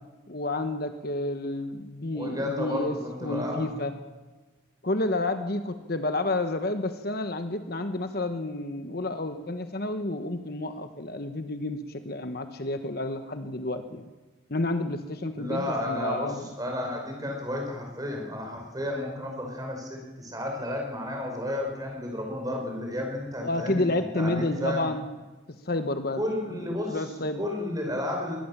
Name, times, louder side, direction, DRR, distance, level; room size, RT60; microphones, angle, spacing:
voice 1, 0.3-3.9 4.8-14.1 14.5-16.4 23.4-25.1 25.6-26.2 26.5-26.6 26.9-27.4, left 2 dB, 50° left, 8 dB, 1.2 m, -30 dB
voice 2, 2.1-3.7 15.3-24.9 26.2-27.0 27.4-28.4, left 1 dB, 20° right, 1 dB, 5.3 m, -32 dB
22.0 x 18.0 x 7.3 m, 1.2 s
head